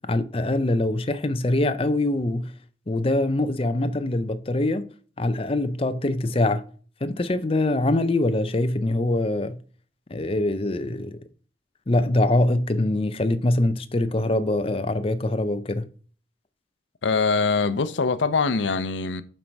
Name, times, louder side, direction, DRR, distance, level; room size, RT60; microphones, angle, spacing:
voice 1, 0.1-2.5 2.9-4.9 5.2-6.6 7.0-9.6 10.1-11.2 11.9-15.9, left 2 dB, 30° left, 0.6 m, -23 dB
voice 2, 17.0-19.2, left 4 dB, 80° left, 0.6 m, -23 dB
7.3 x 4.6 x 5.3 m
head